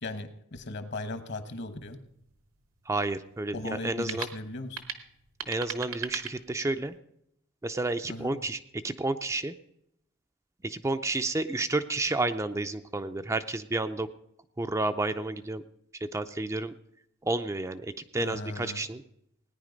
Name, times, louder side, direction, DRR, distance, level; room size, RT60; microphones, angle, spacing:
voice 1, 0.0-2.0 3.5-4.8 8.1-8.4 18.1-18.8, left 2 dB, 55° left, 10 dB, 1.2 m, -37 dB
sound 1, 1.6-7.0, right 8 dB, 75° right, 1.1 m, -41 dB
voice 2, 2.9-4.3 5.5-6.9 7.6-9.5 10.6-14.1 14.6-15.6 15.9-16.8 17.2-19.0, right 2 dB, 15° right, 9 dB, 0.4 m, -31 dB
18.0 x 9.9 x 5.2 m, 0.76 s
head